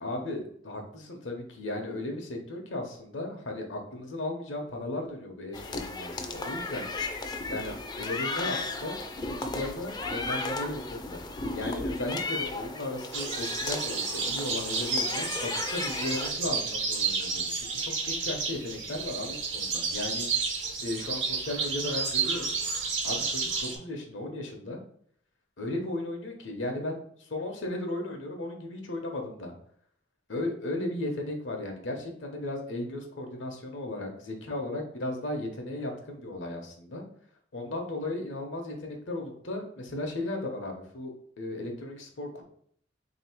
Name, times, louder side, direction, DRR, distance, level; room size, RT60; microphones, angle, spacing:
voice 1, 0.0-6.9 7.5-11.2 11.5-20.4 20.8-22.5 23.0-24.8 25.6-29.5 30.3-37.0 37.5-42.4, left 1 dB, 80° left, 3 dB, 1.0 m, -36 dB
sound 1, 5.5-16.3, left 3 dB, 20° left, 0.4 m, -35 dB
sound 2, 13.1-23.8, right 4 dB, 80° right, 1.1 m, -31 dB
3.3 x 3.0 x 4.5 m, 0.64 s
head